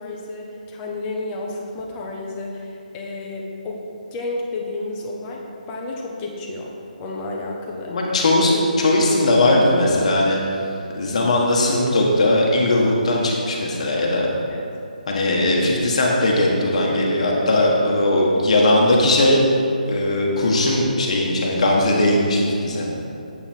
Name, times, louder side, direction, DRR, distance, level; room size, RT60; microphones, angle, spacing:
voice 1, 0.0-3.8 4.1-6.7 7.0-8.0 8.3-8.7 14.5-14.6, left 2 dB, 15° left, -1 dB, 0.7 m, -31 dB
voice 2, 7.9-10.4 10.9-14.3 15.1-19.4 19.9-22.9, left 1 dB, 45° left, -2 dB, 1.4 m, -18 dB
8.2 x 5.5 x 4.5 m, 2.6 s
hypercardioid pair, 170°, 5 cm